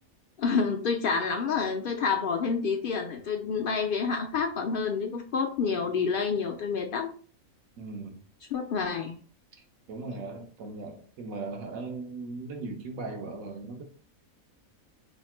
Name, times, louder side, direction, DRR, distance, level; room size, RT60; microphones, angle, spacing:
voice 1, 0.4-7.1 8.5-9.1, left 5 dB, 70° left, 0.5 m, -28 dB
voice 2, 7.8-8.2 9.9-13.8, right 3 dB, 85° right, 1.3 m, -38 dB
3.4 x 2.1 x 4.2 m
omnidirectional pair, 1.4 m